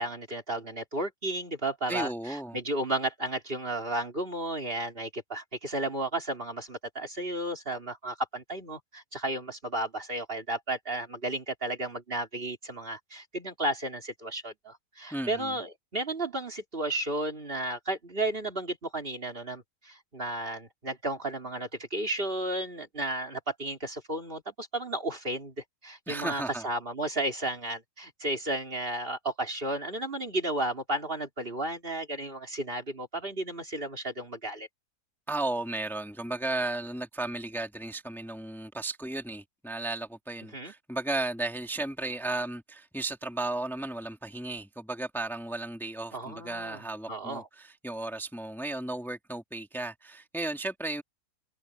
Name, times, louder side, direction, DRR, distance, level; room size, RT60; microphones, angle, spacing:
voice 1, 0.0-25.5 25.8-34.7 40.5-40.7 46.1-46.8 47.1-47.5, right 1 dB, 35° right, 3.6 m, -33 dB
voice 2, 1.9-2.6 15.1-15.5 26.1-26.6 35.3-51.0, right 2 dB, ahead, 2.3 m, -34 dB
omnidirectional pair, 1.7 m